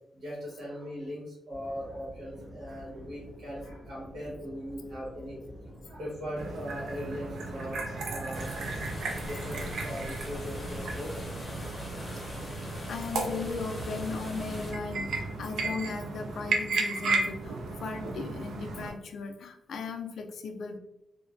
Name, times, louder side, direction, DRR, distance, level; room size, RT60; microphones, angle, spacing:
voice 1, 0.1-5.4 5.6-8.5 9.1-11.3, equal, 70° right, -7 dB, 1.1 m, -40 dB
sound 1, 1.5-10.7, equal, 25° right, 1.4 m, -48 dB
sound 2, 6.4-18.9, right 3 dB, 90° right, 0.4 m, -34 dB
sound 3, 8.3-14.7, left 2 dB, 30° left, 0.7 m, -42 dB
voice 2, 12.6-20.8, left 4 dB, 70° left, 5 dB, 0.4 m, -37 dB
3.0 x 2.1 x 2.5 m, 0.85 s
cardioid pair, 110°, 0 cm